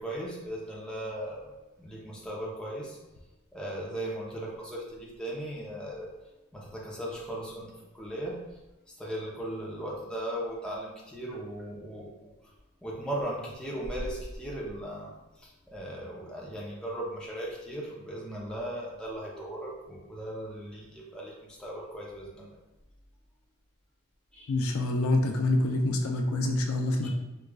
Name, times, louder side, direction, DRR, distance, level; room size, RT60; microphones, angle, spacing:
voice 1, 0.0-1.5 1.8-3.0 3.5-6.1 6.5-8.4 9.0-12.3 12.8-15.1 15.4-22.5 24.3-24.5 27.0-27.1, right 1 dB, 5° left, -5 dB, 0.6 m, -37 dB
voice 2, 24.5-27.1, left 2 dB, 80° left, 3 dB, 0.4 m, -26 dB
4.8 x 2.4 x 2.3 m, 1.0 s
head